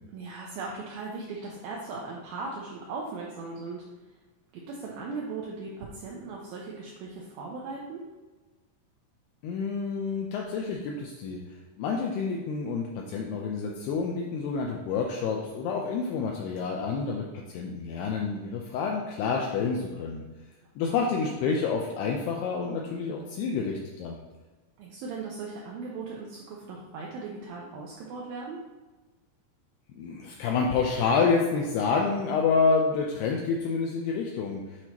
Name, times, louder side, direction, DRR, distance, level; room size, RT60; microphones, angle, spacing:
voice 1, 0.1-3.8 4.5-8.0 20.8-21.4 24.8-28.6, right 4 dB, 85° right, -3 dB, 2.1 m, -38 dB
voice 2, 9.4-11.4 11.8-20.2 20.8-24.2 29.9-34.6, left 5 dB, 80° left, 0 dB, 2.4 m, -28 dB
8.0 x 4.4 x 2.9 m, 1.2 s
omnidirectional pair, 5.1 m